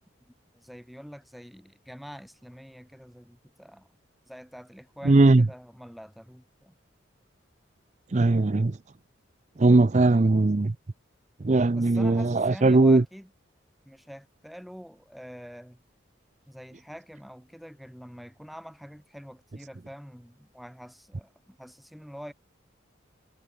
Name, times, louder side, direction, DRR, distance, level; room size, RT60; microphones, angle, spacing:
voice 1, 0.5-3.9 4.3-6.7 11.7-13.3 13.8-15.8 16.5-22.3, equal, ahead, 1.4 m, -45 dB
voice 2, 5.0-5.5 8.1-8.8 9.6-10.8 11.4-13.0, right 2 dB, 35° right, 0.5 m, -19 dB
head